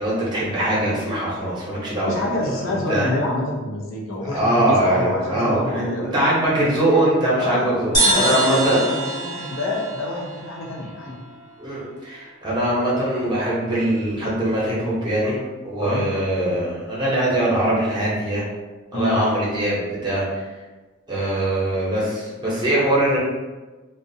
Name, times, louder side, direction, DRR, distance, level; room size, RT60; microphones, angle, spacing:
voice 1, 0.0-3.1 4.2-8.8 11.6-18.4 18.9-20.4 21.1-23.2, right 1 dB, 20° right, -6 dB, 0.7 m, -22 dB
voice 2, 2.0-6.1 7.4-11.3 15.8-16.1 18.9-19.2, left 2 dB, 80° left, -1 dB, 0.6 m, -27 dB
sound 1, 7.9-11.5, right 1 dB, 20° left, 0.7 m, -24 dB
2.4 x 2.1 x 2.6 m, 1.2 s
head